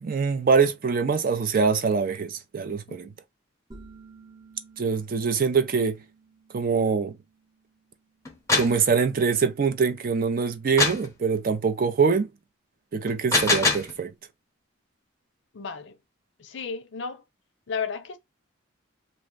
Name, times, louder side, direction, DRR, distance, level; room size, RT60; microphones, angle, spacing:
voice 1, 0.0-3.1 4.8-6.0 6.5-7.2 8.5-12.3 12.9-14.1, right 5 dB, 45° right, 0.4 m, -24 dB
sound 1, 3.7-9.1, right 3 dB, 15° right, 0.8 m, -53 dB
sound 2, 8.3-8.8 10.8-11.1 13.1-13.9, left 3 dB, 15° left, 0.6 m, -23 dB
voice 2, 15.5-16.0 16.4-17.2 17.7-18.2, left 5 dB, 55° left, 0.5 m, -33 dB
2.6 x 2.1 x 3.7 m
head